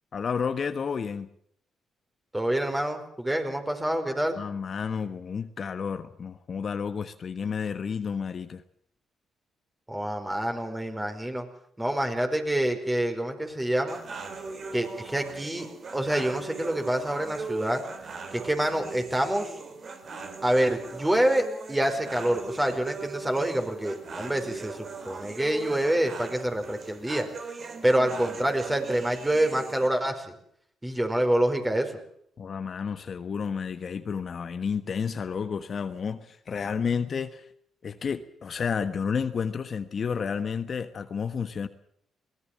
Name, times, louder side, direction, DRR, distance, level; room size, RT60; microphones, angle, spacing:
voice 1, 0.1-1.3 4.3-8.6 32.4-37.5 37.8-41.7, left 6 dB, 50° left, 10 dB, 1.3 m, -31 dB
voice 2, 2.3-4.4 9.9-11.4 11.8-14.0 14.7-15.7 15.9-17.8 18.3-19.5 20.4-27.3 27.8-30.2 30.8-32.0, right 1 dB, 15° right, 6 dB, 4.9 m, -27 dB
sound 1, 13.9-29.9, right 4 dB, 50° right, 3.6 m, -39 dB
22.0 x 18.0 x 7.4 m, 0.67 s
supercardioid pair, 55°, 0 cm